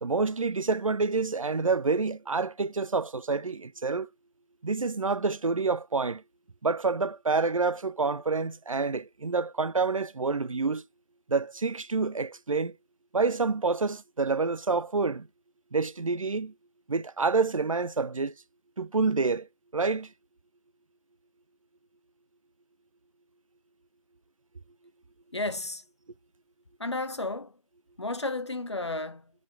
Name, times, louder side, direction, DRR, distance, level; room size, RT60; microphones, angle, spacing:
voice 1, 0.0-4.1 4.6-6.2 6.6-10.8 11.3-12.8 13.1-15.3 15.7-16.5 16.9-18.3 18.8-19.5 19.7-20.1, right 4 dB, 70° right, 0.4 m, -28 dB
voice 2, 25.3-25.8 26.8-27.6 28.0-29.3, left 2 dB, 55° left, 0.8 m, -32 dB
7.1 x 4.2 x 4.7 m
figure-of-eight pair, 170°, 18 cm